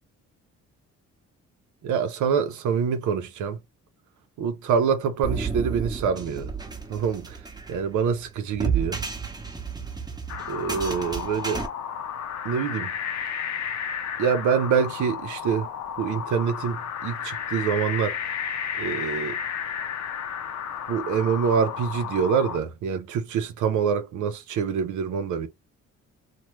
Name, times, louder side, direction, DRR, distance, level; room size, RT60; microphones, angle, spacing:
voice 1, 1.8-3.6 4.4-6.5 6.9-7.4 7.7-9.0 10.5-11.6 12.4-12.9 14.2-15.7 16.0-18.2 18.8-19.4 20.9-25.5, right 6 dB, 75° right, 0.6 m, -25 dB
sound 1, 5.2-11.7, right 5 dB, 15° right, 0.8 m, -32 dB
sound 2, 10.3-22.6, left 8 dB, 65° left, 0.6 m, -32 dB
2.9 x 2.1 x 3.1 m
cardioid pair, 90°, 30 cm